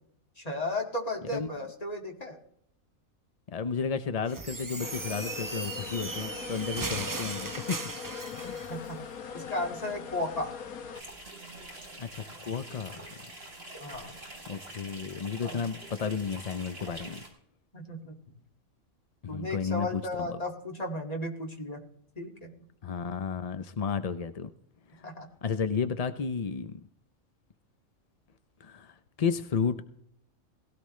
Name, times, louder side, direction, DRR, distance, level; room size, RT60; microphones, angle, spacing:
voice 1, 0.4-2.4 8.7-9.0 9.3-10.5 13.8-14.2 15.4-15.6 17.7-18.2 19.3-21.8 22.2-22.5 25.0-25.3, left 1 dB, 25° left, 1 dB, 2.2 m, -34 dB
voice 2, 3.5-7.8 8.3-8.6 12.0-13.0 14.5-17.2 19.2-20.4 22.8-24.5 24.9-25.1 25.4-26.9 28.6-29.8, left 6 dB, 50° left, 10 dB, 0.4 m, -32 dB
sound 1, 4.3-8.7, right 3 dB, 25° right, 0.4 m, -37 dB
sound 2, 4.8-11.0, left 6 dB, 90° left, 1.6 m, -41 dB
sound 3, 10.9-17.3, right 1 dB, 45° right, 4.4 m, -46 dB
18.5 x 16.5 x 3.2 m, 0.69 s
omnidirectional pair, 1.5 m